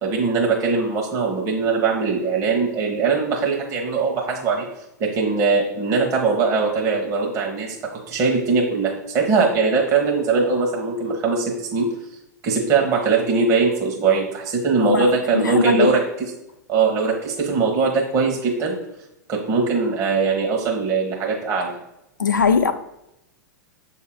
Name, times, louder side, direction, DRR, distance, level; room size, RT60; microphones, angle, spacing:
voice 1, 0.0-4.7 5.0-11.9 12.4-16.0 16.7-18.7 19.3-21.8, right 4 dB, 30° right, -1 dB, 1.1 m, -21 dB
voice 2, 15.3-15.9 22.2-22.7, left 5 dB, 80° left, 7 dB, 0.5 m, -19 dB
6.9 x 2.8 x 5.0 m, 0.87 s
figure-of-eight pair, 100°, 10 cm